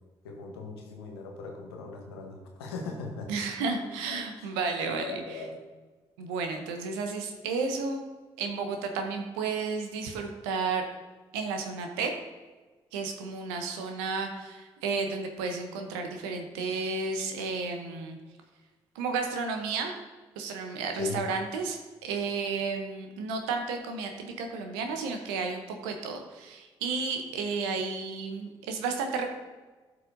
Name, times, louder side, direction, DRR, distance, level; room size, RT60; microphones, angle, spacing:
voice 1, 0.2-3.3 3.7-4.5 4.9-5.6 6.7-6.8 21.0-21.2, left 4 dB, 90° left, 1 dB, 1.0 m, -39 dB
voice 2, 3.3-5.4 6.2-8.0 8.4-10.8 11.3-12.1 12.9-18.2 18.9-19.9 20.4-29.3, right 4 dB, 80° right, 4 dB, 0.7 m, -32 dB
12.5 x 4.7 x 2.6 m, 1.3 s
hypercardioid pair, 45°, 13 cm